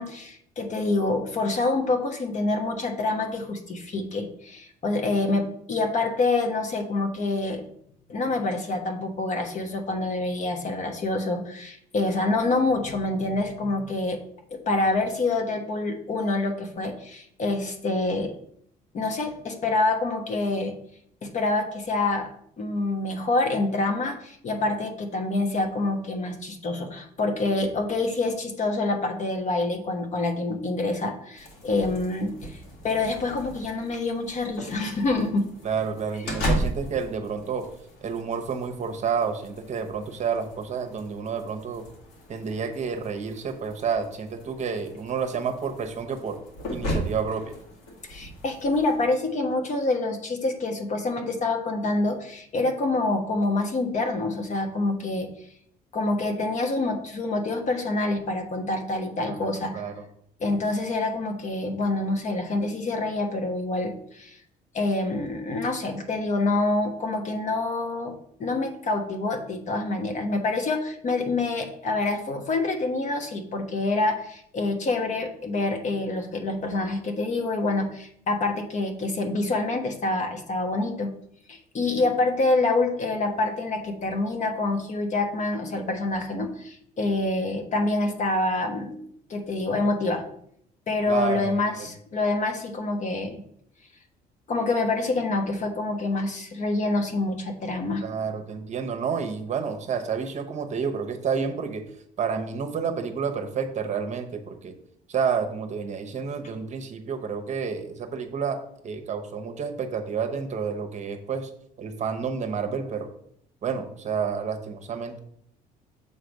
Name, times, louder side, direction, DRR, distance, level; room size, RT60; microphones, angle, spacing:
voice 1, 0.0-7.6 8.1-14.2 14.5-18.3 18.9-20.7 21.2-22.3 22.6-32.6 32.8-35.5 48.1-55.3 55.9-59.8 60.4-64.4 64.7-68.1 68.4-81.1 81.5-89.0 89.3-90.2 90.9-93.4 94.5-98.0, left 2 dB, 45° left, 4 dB, 1.1 m, -26 dB
sound 1, 31.3-49.0, equal, 90° left, 1.9 m, -36 dB
voice 2, 35.6-37.7 38.0-41.8 42.3-46.4 46.7-47.5 59.3-60.1 91.1-91.5 98.0-101.8 102.2-104.7 105.1-108.6 108.8-111.5 111.8-113.1 113.6-115.2, right 6 dB, 45° right, 6 dB, 0.9 m, -30 dB
6.8 x 3.2 x 5.2 m, 0.69 s
cardioid pair, 110°, 17 cm